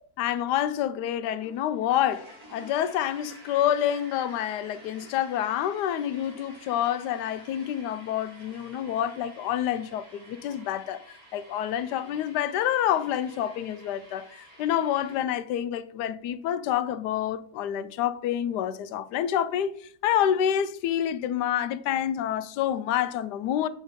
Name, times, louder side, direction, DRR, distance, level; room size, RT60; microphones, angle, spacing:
voice 1, 0.2-11.0 11.3-19.7 20.0-23.7, left 10 dB, 85° left, 1.2 m, -28 dB
sound 1, 1.4-15.2, right 1 dB, 85° right, 3.2 m, -51 dB
7.3 x 6.2 x 3.6 m
omnidirectional pair, 1.7 m